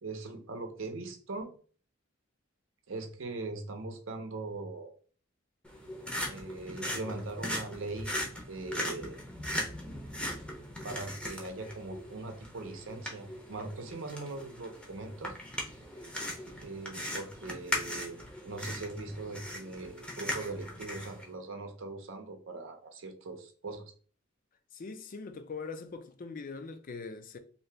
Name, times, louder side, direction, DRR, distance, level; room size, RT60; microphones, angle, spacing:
voice 1, 0.0-1.5 2.9-4.9 6.3-8.2 8.5-9.2 10.8-15.3 16.6-23.8, right 3 dB, 70° right, 0.7 m, -40 dB
sound 1, 5.6-21.2, left 1 dB, 5° left, 0.7 m, -39 dB
voice 2, 24.7-27.4, left 4 dB, 45° left, 0.4 m, -42 dB
2.8 x 2.7 x 3.3 m
head